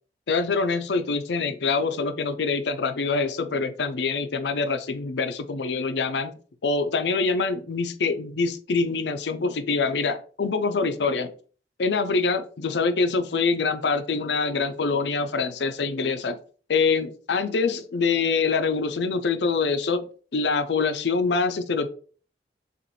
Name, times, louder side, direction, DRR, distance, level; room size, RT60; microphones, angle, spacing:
voice 1, 0.3-6.3 6.6-11.3 11.8-16.4 16.7-21.9, left 4 dB, 80° left, 9 dB, 0.5 m, -25 dB
6.6 x 2.5 x 3.1 m, 0.42 s
head